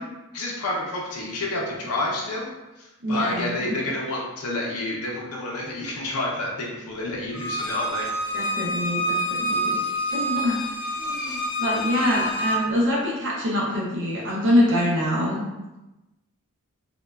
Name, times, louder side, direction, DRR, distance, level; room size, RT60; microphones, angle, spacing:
voice 1, 0.3-2.5 2.8-8.1, left 2 dB, 70° left, -3 dB, 0.6 m, -29 dB
voice 2, 3.0-3.8 8.3-9.8 10.1-10.6 10.9-15.4, left 1 dB, 55° right, -4 dB, 0.5 m, -25 dB
Bowed string instrument, 7.3-12.6, equal, 5° right, 0.4 m, -27 dB
3.0 x 2.1 x 2.3 m, 1.0 s
head